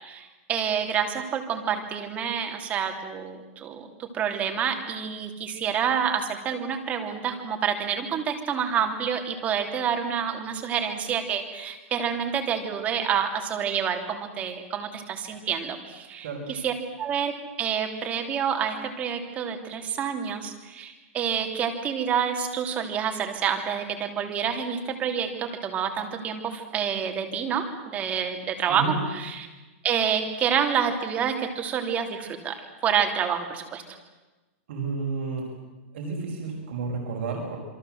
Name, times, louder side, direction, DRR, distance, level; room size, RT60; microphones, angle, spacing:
voice 1, 0.0-17.3 17.6-29.5 29.8-32.6 32.8-33.8, right 7 dB, 20° right, 4 dB, 2.9 m, -28 dB
voice 2, 34.7-35.5 35.9-37.7, right 4 dB, 60° right, 1 dB, 5.7 m, -31 dB
27.5 x 23.0 x 7.8 m, 1.2 s
supercardioid pair, 165°, 7 cm